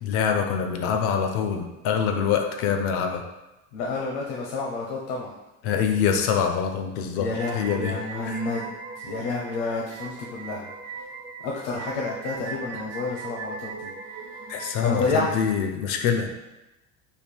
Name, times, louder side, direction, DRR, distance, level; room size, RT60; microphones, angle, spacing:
voice 1, 0.0-3.2 5.6-8.0 8.3-8.4 14.5-16.3, left 7 dB, 45° left, 5 dB, 0.4 m, -25 dB
voice 2, 3.7-5.3 7.1-10.7 11.4-13.9 14.8-15.3, left 3 dB, 80° left, -3 dB, 0.7 m, -30 dB
sound 1, 7.3-15.5, right 4 dB, 25° right, 0.6 m, -39 dB
3.4 x 2.3 x 4.4 m, 1.0 s
cardioid pair, 160°, 32 cm